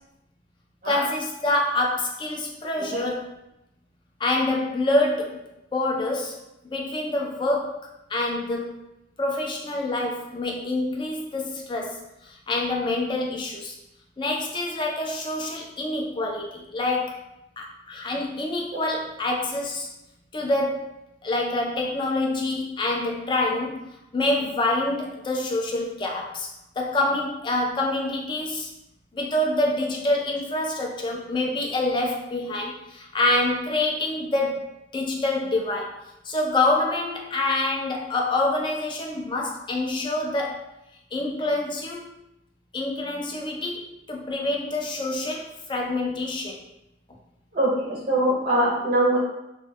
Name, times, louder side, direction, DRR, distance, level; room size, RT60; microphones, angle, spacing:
voice 1, 0.8-3.3 4.2-5.4 5.7-6.4 6.6-8.8 9.2-13.8 14.2-17.2 17.6-19.9 20.3-20.9 21.2-23.8 24.1-26.5 26.8-28.7 29.1-36.0 36.2-40.6 41.1-42.1 42.7-46.6, left 2 dB, 25° left, 0 dB, 0.4 m, -26 dB
voice 2, 47.5-49.2, right 1 dB, 40° right, -4 dB, 0.5 m, -23 dB
2.1 x 2.1 x 3.4 m, 0.87 s
head